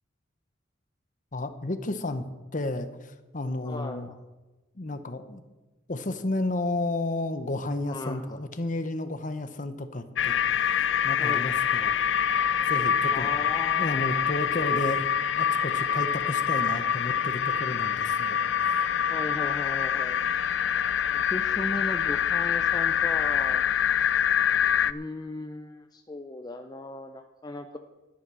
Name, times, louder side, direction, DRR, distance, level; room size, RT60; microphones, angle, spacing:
voice 1, 1.3-2.3 2.5-4.1 4.7-5.4 5.9-12.0 12.6-13.3 13.8-18.8, left 2 dB, 40° left, 10 dB, 0.9 m, -32 dB
voice 2, 3.6-4.2 7.9-8.4 11.2-11.5 13.1-14.3 19.1-20.2 21.1-23.6 24.8-27.8, left 2 dB, 20° left, 5 dB, 0.5 m, -37 dB
sound 1, 10.2-24.9, left 8 dB, 70° left, 0.4 m, -25 dB
11.5 x 10.5 x 6.2 m, 1.1 s
head